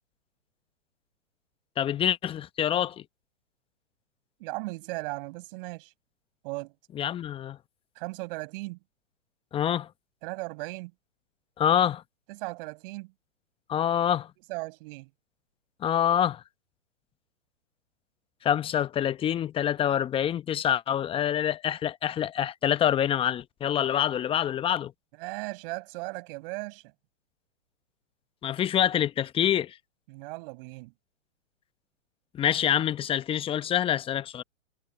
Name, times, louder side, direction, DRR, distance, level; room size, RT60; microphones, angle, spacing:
voice 1, 1.8-3.0 7.0-7.6 9.5-9.9 11.6-12.0 13.7-14.3 15.8-16.4 18.4-24.9 28.4-29.7 32.3-34.4, left 10 dB, 15° left, 0.9 m, -26 dB
voice 2, 4.4-5.9 6.4-6.7 8.0-8.8 10.2-10.9 12.3-13.1 14.5-15.1 25.2-26.9 30.1-30.9, right 25 dB, 40° right, 7.9 m, -37 dB
hypercardioid pair, 130°, 39 cm